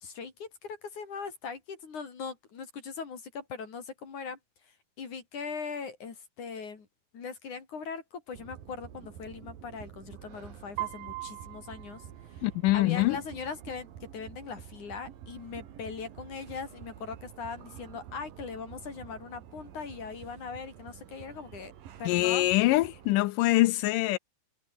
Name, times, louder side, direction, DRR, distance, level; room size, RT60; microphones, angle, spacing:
voice 1, 0.0-4.4 5.0-6.9 7.1-12.0 12.7-13.9 14.1-21.7 22.0-22.5, left 5 dB, 50° left, 4.6 m, -40 dB
sound 1, 8.3-23.2, right 10 dB, 65° right, 3.6 m, -49 dB
Piano, 10.8-12.8, right 19 dB, 85° right, 2.0 m, -40 dB
voice 2, 12.4-13.2 22.1-24.2, left 18 dB, 85° left, 1.9 m, -24 dB
omnidirectional pair, 4.5 m